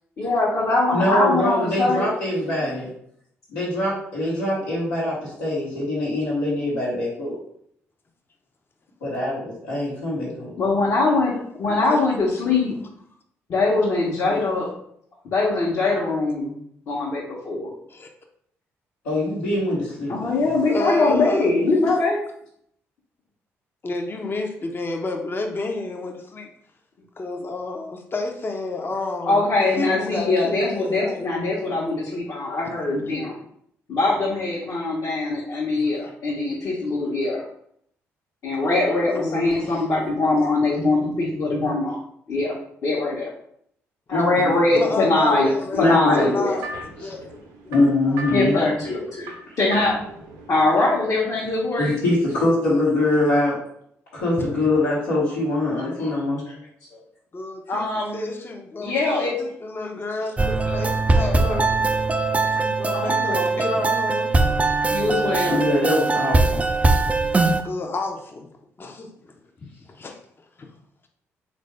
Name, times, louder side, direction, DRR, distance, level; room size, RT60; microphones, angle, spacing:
voice 1, 0.2-2.1 10.6-12.7 13.5-14.7 15.3-16.5 16.9-17.7 20.1-22.2 29.3-33.4 33.9-37.4 38.4-42.0 42.3-42.5 42.8-43.3 44.1-45.5 45.8-46.6 48.3-49.3 49.6-50.0 50.5-51.9 55.7-56.2 56.5-56.6 56.9-57.0 57.7-58.3 58.8-59.3 61.2-61.5 62.4-62.5 62.9-63.6 64.9-65.6, left 2 dB, 55° left, -6 dB, 1.0 m, -22 dB
voice 2, 0.9-2.9 3.5-7.3 9.0-10.5 19.0-20.3 44.1-44.4 45.7-46.3 47.0-47.1 47.7-48.6 49.5-49.6 51.8-53.5 54.1-56.4 65.4-66.6, left 1 dB, 85° left, -10 dB, 1.1 m, -23 dB
voice 3, 11.7-12.0 14.3-14.5 17.9-18.1 20.1-20.2 20.7-21.5 23.8-26.5 27.2-31.2 39.1-39.9 44.7-45.9 46.2-46.7 47.0-47.3 47.6-47.8 48.1-48.2 54.4-54.5 57.3-57.9 58.1-59.0 59.4-61.7 62.6-64.4 67.6-68.5 68.8-69.3 69.6-70.2 70.6-70.7, left 2 dB, 35° left, 3 dB, 0.6 m, -30 dB
sound 1, 45.7-51.2, right 1 dB, 75° right, 0.6 m, -39 dB
sound 2, 60.4-67.6, right 3 dB, 20° right, 0.4 m, -21 dB
3.6 x 2.6 x 3.3 m, 0.68 s
hypercardioid pair, 45°, 7 cm